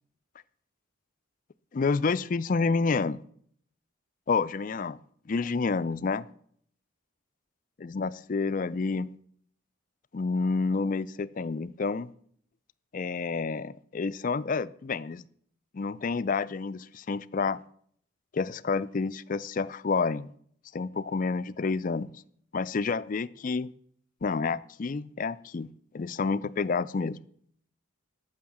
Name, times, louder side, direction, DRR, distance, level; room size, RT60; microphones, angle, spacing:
voice 1, 1.7-3.2 4.3-5.0 5.3-6.3 7.8-9.1 10.1-12.1 12.9-15.2 15.7-17.6 18.3-20.3 20.7-22.1 22.5-23.7 24.2-25.7 25.9-27.2, left 4 dB, 40° left, 16 dB, 0.4 m, -29 dB
13.5 x 6.2 x 7.1 m, 0.64 s
head